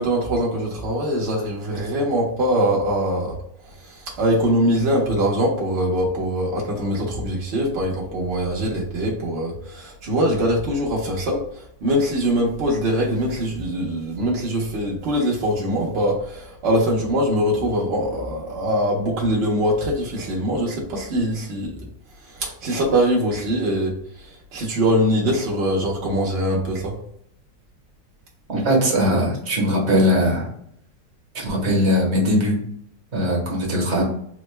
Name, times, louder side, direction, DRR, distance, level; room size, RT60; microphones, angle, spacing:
voice 1, 0.0-3.4 4.2-11.4 11.8-21.7 22.4-23.9 24.5-27.0, equal, 65° right, -3 dB, 0.6 m, -22 dB
voice 2, 28.5-30.5 31.3-32.6 33.1-34.0, equal, 45° right, -1 dB, 1.0 m, -20 dB
3.6 x 2.1 x 3.1 m, 0.70 s
omnidirectional pair, 2.0 m